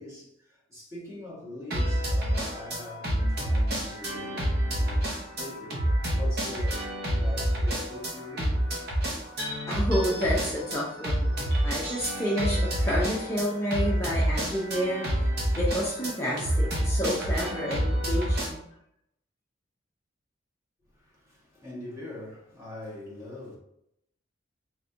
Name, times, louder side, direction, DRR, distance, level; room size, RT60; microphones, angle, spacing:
voice 1, 0.0-5.8 6.1-9.0 20.9-23.6, left 1 dB, 15° right, 1.2 m, -43 dB
sound 1, 1.7-18.5, right 1 dB, 55° right, 0.9 m, -28 dB
voice 2, 9.7-11.3 11.6-15.0 15.6-18.7, equal, 15° left, 0.6 m, -29 dB
3.4 x 3.1 x 2.6 m
head